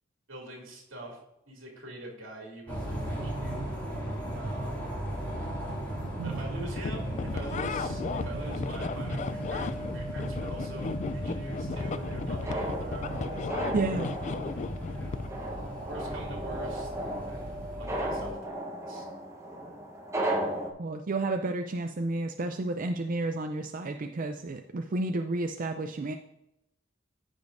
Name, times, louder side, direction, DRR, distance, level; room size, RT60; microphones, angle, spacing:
voice 1, 0.3-1.2 1.5-3.6 4.3-4.9 6.2-13.5 14.2-14.5 15.9-16.9 17.3-19.1, right 1 dB, 85° right, -1 dB, 2.6 m, -44 dB
sound 1, 2.7-18.3, right 1 dB, 10° left, 2.5 m, -36 dB
sound 2, 6.7-15.3, left 4 dB, 35° left, 0.3 m, -35 dB
sound 3, 11.7-20.7, right 1 dB, 15° right, 1.1 m, -35 dB
voice 2, 13.7-14.1 20.8-26.1, right 2 dB, 45° right, 6 dB, 0.5 m, -31 dB
14.0 x 5.2 x 2.6 m, 0.84 s
head